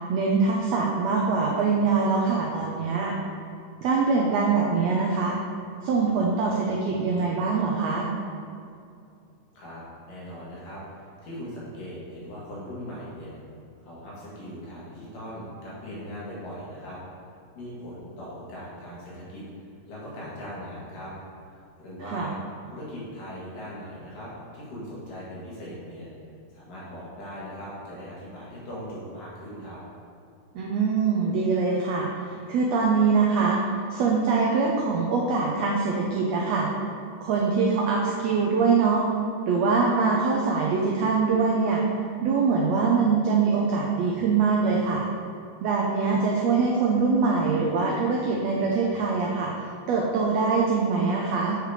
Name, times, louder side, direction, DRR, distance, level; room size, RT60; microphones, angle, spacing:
voice 1, 0.1-3.1 3.8-5.3 5.8-8.1 22.1-22.3 30.5-32.1 32.5-33.6 33.9-36.7 37.2-39.1 39.5-41.8 42.2-45.0 45.6-49.5 49.9-51.6, right 4 dB, 90° right, -1 dB, 1.4 m, -23 dB
voice 2, 9.6-13.4 13.9-17.0 17.5-19.4 19.9-21.1 21.5-22.4 22.7-26.1 26.5-29.8, equal, 75° left, -8 dB, 3.5 m, -39 dB
8.0 x 4.9 x 4.9 m, 2.5 s
omnidirectional pair, 3.9 m